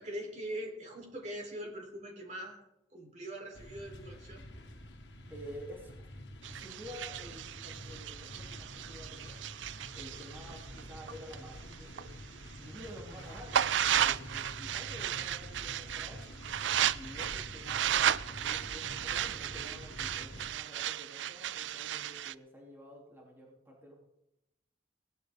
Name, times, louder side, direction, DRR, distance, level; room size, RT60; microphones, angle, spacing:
voice 1, 0.0-2.6 2.9-4.4, right 1 dB, 40° right, 1 dB, 3.7 m, -42 dB
sound 1, 3.5-20.5, left 1 dB, 75° left, 1.7 m, -48 dB
voice 2, 5.3-6.1 6.5-9.4 9.9-12.1 12.6-16.2 16.9-24.0, equal, 15° right, -3 dB, 3.1 m, -50 dB
sound 2, 6.4-12.1 12.5-22.3, right 10 dB, 85° right, 0.4 m, -34 dB
18.5 x 13.0 x 3.7 m, 0.87 s
head